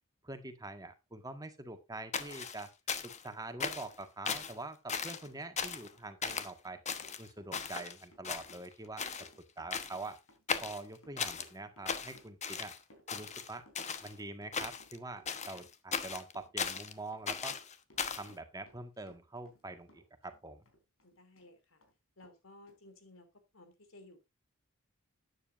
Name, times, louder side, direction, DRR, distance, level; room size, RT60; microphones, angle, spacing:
voice 1, 0.2-2.7 3.0-6.8 7.2-9.0 9.6-10.2 10.6-12.7 13.1-13.6 14.0-17.6 18.1-20.6, right 2 dB, 20° right, 8 dB, 1.7 m, -45 dB
sound 1, 2.1-3.3 3.6-4.0 4.3-4.6 4.9-5.3 5.6-5.9 6.2-6.5 6.9-7.9 8.2-8.7 9.0-9.3 9.7-10.1 10.5-11.5 11.9-12.8 13.1-14.1 14.5-15.0 15.3-16.9 17.3-18.3, left 6 dB, 35° left, 1.1 m, -37 dB
Run, 4.8-19.6 19.9-21.5 21.8-21.9 22.2-22.4 22.7-22.8, equal, 85° left, 4.2 m, -63 dB
voice 2, 21.0-21.8 22.2-23.3 23.5-24.3, left 2 dB, 70° left, 8 dB, 3.1 m, -57 dB
12.5 x 9.8 x 2.6 m, 0.23 s
head